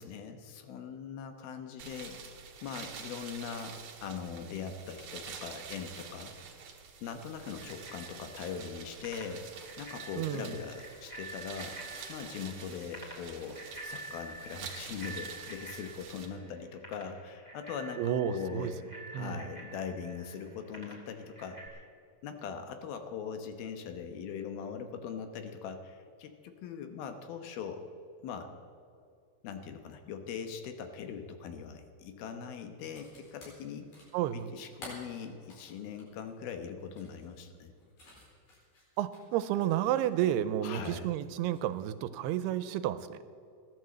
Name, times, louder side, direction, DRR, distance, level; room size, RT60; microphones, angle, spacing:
voice 1, 0.0-2.2 2.6-6.3 7.0-9.5 9.8-11.8 12.1-18.7 19.1-21.9 22.2-27.9 28.2-28.5 29.4-33.9 34.3-37.7 40.6-41.1, left 6 dB, 75° left, 7 dB, 2.8 m, -41 dB
sound 1, 1.8-16.3, right 6 dB, 60° right, 2.5 m, -47 dB
Bicycle bell, 7.6-21.7, right 2 dB, 15° left, 2.7 m, -48 dB
voice 2, 10.2-10.6 18.0-18.7 19.1-19.4 34.1-34.5 39.0-43.2, right 11 dB, 85° right, 13 dB, 2.7 m, -31 dB
sound 2, 32.9-40.4 40.7-41.8, left 1 dB, 55° left, 5.9 m, -54 dB
16.0 x 11.0 x 7.6 m, 2.3 s
omnidirectional pair, 4.6 m